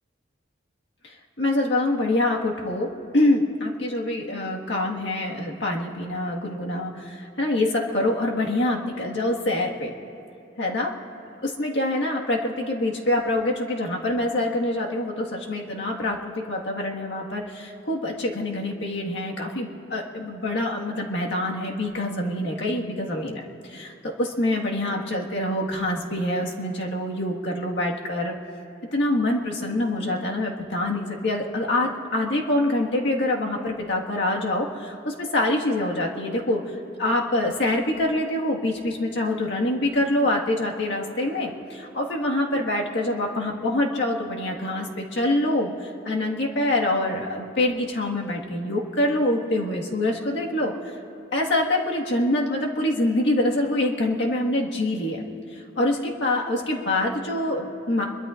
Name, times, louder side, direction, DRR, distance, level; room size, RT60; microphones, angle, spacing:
voice 1, 1.0-9.9 10.6-10.9 11.4-28.3 28.9-50.7 51.3-55.2 55.5-58.0, left 1 dB, 75° left, -1 dB, 1.7 m, -25 dB
25.5 x 22.5 x 2.5 m, 2.8 s
head